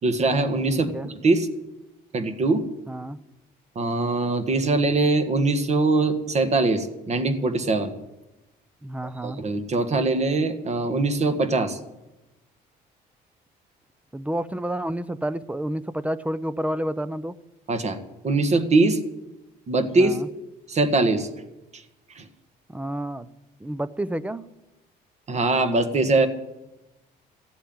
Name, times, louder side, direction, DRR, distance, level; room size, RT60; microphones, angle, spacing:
voice 1, 0.0-0.9 1.2-1.5 2.1-2.7 3.8-8.0 9.2-11.8 17.7-18.0 18.2-19.0 19.7-20.2 20.7-21.3 21.7-21.8 22.2-22.3 25.3-26.3, right 3 dB, 40° right, 8 dB, 1.7 m, -22 dB
voice 2, 0.7-1.1 2.9-3.2 8.8-9.4 14.1-17.3 19.9-20.3 22.7-23.3 23.6-24.4, right 1 dB, 10° right, 16 dB, 0.6 m, -30 dB
15.5 x 8.3 x 9.6 m, 0.99 s
cardioid pair, 110°, 17 cm